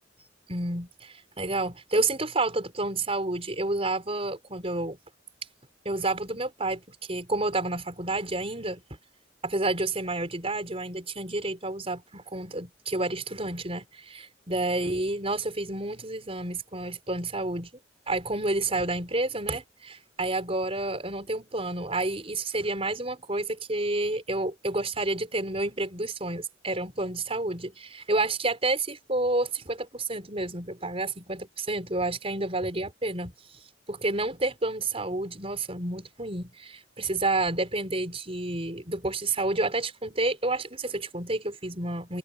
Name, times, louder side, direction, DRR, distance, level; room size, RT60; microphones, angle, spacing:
voice 1, 0.5-5.0 5.9-8.8 9.4-17.7 18.1-33.3 33.9-42.2, right 2 dB, 30° right, 5.6 m, -30 dB
head